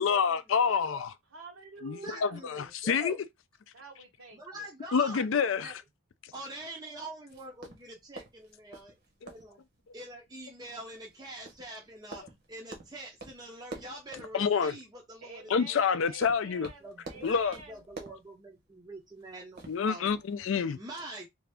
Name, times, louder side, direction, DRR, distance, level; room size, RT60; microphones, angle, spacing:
voice 1, 0.0-1.1 1.8-3.2 4.9-5.8 9.2-9.3 14.3-14.8 15.5-16.7 17.2-17.6 19.7-20.8, left 6 dB, 65° left, 0.4 m, -27 dB
voice 2, 0.8-2.4 3.7-4.7 15.2-17.8, right 3 dB, 75° right, 0.9 m, -49 dB
voice 3, 2.0-3.2 4.3-5.3 5.6-5.8 6.3-9.0 9.3-9.6 9.9-16.0 16.8-17.3 17.7-20.2 20.7-21.3, right 1 dB, 20° right, 0.5 m, -45 dB
sound 1, 7.3-20.4, right 3 dB, 45° right, 0.8 m, -50 dB
2.7 x 2.4 x 3.3 m
head